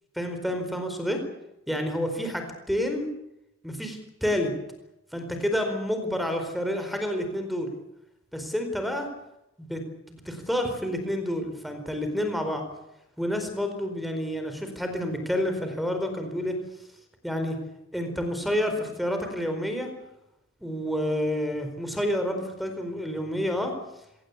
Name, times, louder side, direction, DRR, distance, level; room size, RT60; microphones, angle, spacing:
voice 1, 0.1-1.2 1.7-3.1 3.6-4.5 5.1-7.7 8.3-9.1 9.6-9.8 10.2-12.6 13.2-16.6 17.2-17.6 17.9-19.9 20.6-23.8, equal, ahead, 6 dB, 4.5 m, -29 dB
26.0 x 17.5 x 8.6 m, 0.85 s
head